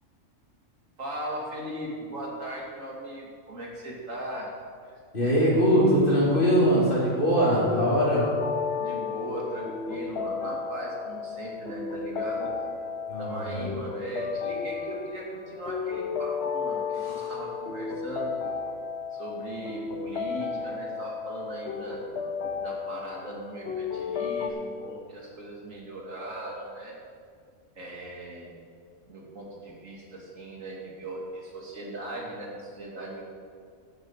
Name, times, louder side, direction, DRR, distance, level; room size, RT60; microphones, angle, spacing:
voice 1, 1.0-4.5 8.8-12.5 13.2-18.3 19.1-22.0 22.6-26.9 27.8-28.5 29.1-33.2, right 1 dB, 75° right, -3 dB, 2.6 m, -38 dB
voice 2, 5.1-8.3 13.1-13.6 17.0-17.3, equal, 40° left, -8 dB, 4.1 m, -22 dB
sound 1, 6.9-24.5, left 6 dB, 55° left, 1.0 m, -33 dB
14.5 x 9.4 x 4.8 m, 2.1 s
omnidirectional pair, 1.4 m